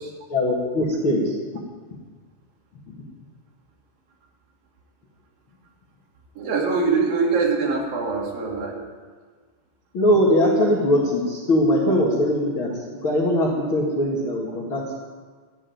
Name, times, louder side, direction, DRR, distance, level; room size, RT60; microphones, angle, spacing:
voice 1, 0.3-1.3 9.9-14.9, left 1 dB, 50° left, -4 dB, 1.5 m, -21 dB
voice 2, 6.4-8.8, right 4 dB, 50° right, -1 dB, 3.7 m, -23 dB
13.0 x 9.9 x 9.4 m, 1.5 s
omnidirectional pair, 5.8 m